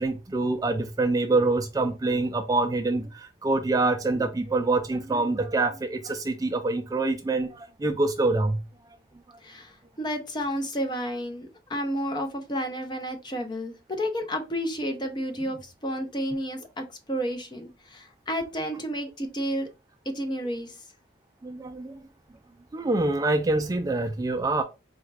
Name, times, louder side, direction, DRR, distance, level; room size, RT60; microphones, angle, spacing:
voice 1, 0.0-8.6 21.4-22.0 22.7-24.6, right 2 dB, 20° right, 0.3 m, -25 dB
voice 2, 9.4-19.7 20.1-20.7, equal, 25° left, 0.6 m, -31 dB
4.2 x 2.3 x 3.2 m
head